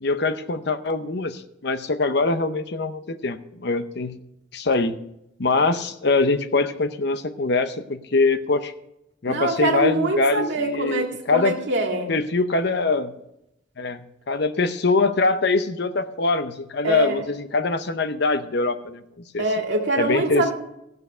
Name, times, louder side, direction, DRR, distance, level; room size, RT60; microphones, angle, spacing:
voice 1, 0.0-4.1 4.5-4.9 5.4-8.7 9.2-11.5 12.1-13.1 13.8-19.0 19.3-19.4 20.0-20.5, left 3 dB, 55° left, 11 dB, 0.7 m, -23 dB
voice 2, 9.3-12.1 16.8-17.2 19.4-20.5, right 2 dB, 65° right, 2 dB, 1.9 m, -24 dB
15.0 x 6.8 x 5.6 m, 0.83 s
head